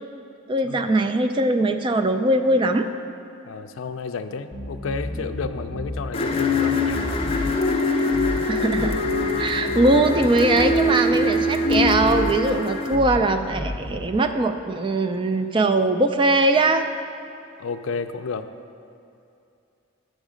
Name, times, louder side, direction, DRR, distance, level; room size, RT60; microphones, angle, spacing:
voice 1, 0.5-2.9 8.5-9.0 9.4-16.9, right 2 dB, 25° right, 7 dB, 0.3 m, -21 dB
voice 2, 3.5-7.1 17.6-18.5, left 4 dB, 80° left, 9 dB, 0.4 m, -31 dB
sound 1, 4.5-6.0 6.3-7.6 8.1-8.4 8.7-10.8 11.1-12.4 12.9-13.2 13.5-14.1, left 1 dB, 50° right, 1.5 m, -32 dB
sound 2, 6.1-13.0, left 2 dB, 30° left, 0.5 m, -23 dB
8.2 x 6.3 x 5.0 m, 2.6 s
head